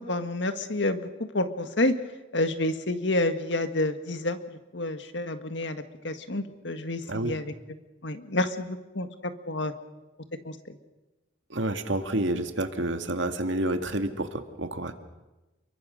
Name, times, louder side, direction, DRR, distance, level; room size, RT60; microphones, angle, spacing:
voice 1, 0.0-2.0 2.3-7.5 8.0-9.7 10.4-10.8, left 2 dB, 70° left, 9 dB, 1.8 m, -29 dB
voice 2, 11.5-14.9, right 1 dB, 75° right, 7 dB, 2.1 m, -29 dB
29.0 x 23.0 x 6.5 m, 1.1 s
head